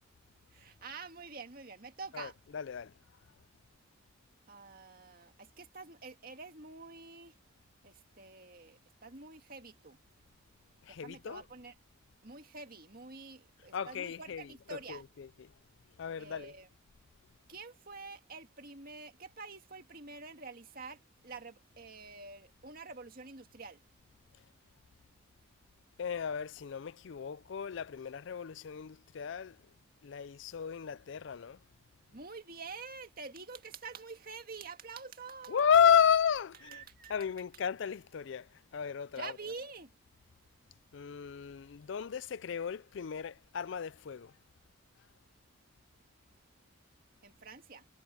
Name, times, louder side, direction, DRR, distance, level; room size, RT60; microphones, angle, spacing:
voice 1, 0.5-2.3 4.5-7.4 7.8-10.0 10.9-11.7 12.2-15.0 16.2-16.7 17.5-23.8 32.1-35.7 36.6-37.2 39.2-40.0 47.2-47.9, right 4 dB, 45° right, 2.0 m, -47 dB
voice 2, 2.1-3.0 10.8-11.4 13.7-15.5 16.0-16.5 26.0-29.7 30.0-31.6 35.5-36.8 37.1-39.4 40.9-44.3, left 7 dB, 60° left, 0.4 m, -32 dB
head